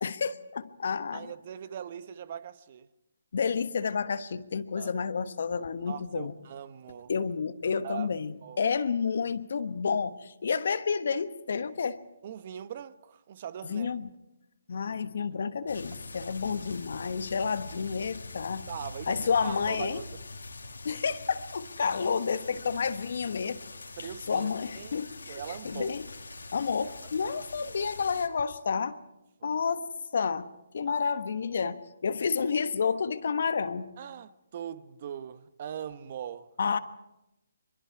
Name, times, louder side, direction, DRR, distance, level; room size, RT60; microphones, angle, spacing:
voice 1, 0.0-1.3 3.3-6.3 7.1-12.0 13.6-14.1 14.7-18.6 19.1-20.0 20.8-23.6 24.3-26.1 26.5-29.0 29.4-29.9 30.1-30.5 30.7-33.9 36.6-36.8, left 5 dB, 60° left, 1.2 m, -30 dB
voice 2, 1.1-2.9 4.8-4.9 5.9-7.1 7.8-8.1 8.4-8.6 12.2-13.9 18.7-19.2 19.4-20.2 24.0-24.5 24.8-25.9 26.8-27.0 27.2-27.4 29.4-29.6 30.9-31.0 34.0-36.5, right 9 dB, 45° right, 0.9 m, -41 dB
sound 1, 15.7-28.3, left 3 dB, 85° left, 2.4 m, -44 dB
24.5 x 22.5 x 4.8 m
hypercardioid pair, 150°, 0 cm